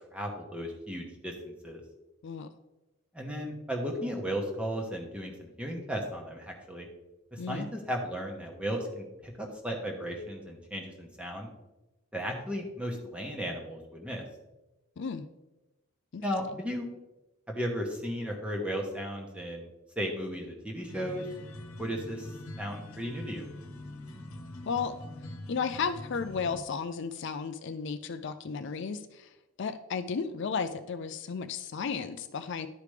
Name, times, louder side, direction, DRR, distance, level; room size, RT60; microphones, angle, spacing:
voice 1, 0.1-1.8 3.1-6.9 7.3-11.5 12.1-14.2 16.2-16.9 17.5-19.7 20.0-21.3 21.8-22.3 22.6-23.5, equal, 5° right, 1 dB, 1.1 m, -35 dB
voice 2, 15.0-15.3 16.1-16.2 24.7-25.0 25.5-29.3 29.6-32.7, left 5 dB, 55° left, 9 dB, 0.4 m, -34 dB
sound 1, 20.9-26.6, left 1 dB, 80° left, 1.0 m, -44 dB
11.5 x 5.0 x 3.3 m, 1.0 s
head